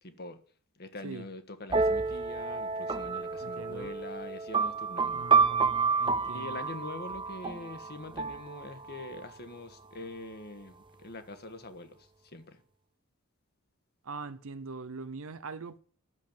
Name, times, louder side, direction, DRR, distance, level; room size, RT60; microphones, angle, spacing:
voice 1, 0.0-0.4 0.8-5.3 6.2-12.0 12.3-12.6, left 2 dB, 45° left, 1.6 m, -44 dB
sound 1, 1.7-9.3, right 5 dB, 20° right, 0.7 m, -30 dB
voice 2, 3.4-3.9 5.1-6.6 14.0-15.8, right 4 dB, 65° right, 0.8 m, -42 dB
12.5 x 7.5 x 8.9 m
head